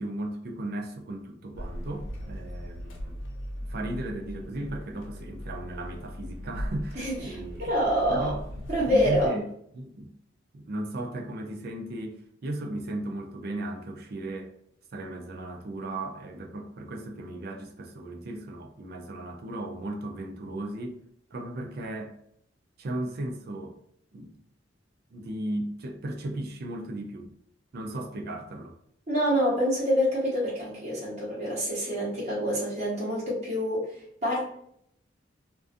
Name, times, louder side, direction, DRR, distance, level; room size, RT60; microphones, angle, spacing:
voice 1, 0.0-3.2 3.7-7.7 8.1-8.4 8.9-9.5 9.7-10.1 10.5-14.5 14.9-21.0 21.3-22.2 22.8-23.8 24.1-24.3 25.1-27.3 27.7-28.8, right 1 dB, 50° right, 0.4 m, -36 dB
sound 1, 1.5-9.3, equal, 90° left, 0.5 m, -39 dB
voice 2, 6.9-8.3 8.7-9.3 29.1-34.4, equal, 35° right, 0.8 m, -27 dB
2.4 x 2.2 x 2.4 m
head